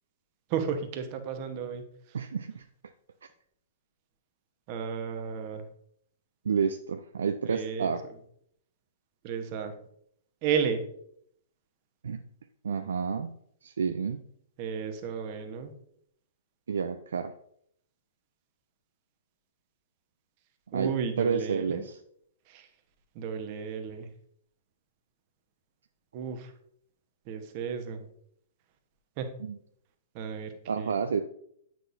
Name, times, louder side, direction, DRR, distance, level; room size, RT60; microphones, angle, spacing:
voice 1, 0.5-1.8 4.7-5.6 7.5-7.9 9.2-9.7 10.4-10.8 14.6-15.7 20.7-21.8 22.5-22.7 23.1-24.1 26.1-26.5 27.3-28.0 29.2-29.3 30.1-31.0, right 7 dB, 45° right, 6 dB, 1.0 m, -33 dB
voice 2, 2.1-2.6 6.4-8.0 12.0-12.2 12.6-13.3 13.6-14.2 16.7-17.3 20.7-22.0 29.4-29.6 30.7-31.2, right 6 dB, 75° right, 8 dB, 0.3 m, -30 dB
8.0 x 6.0 x 2.6 m, 0.69 s
hypercardioid pair, 115°, 0 cm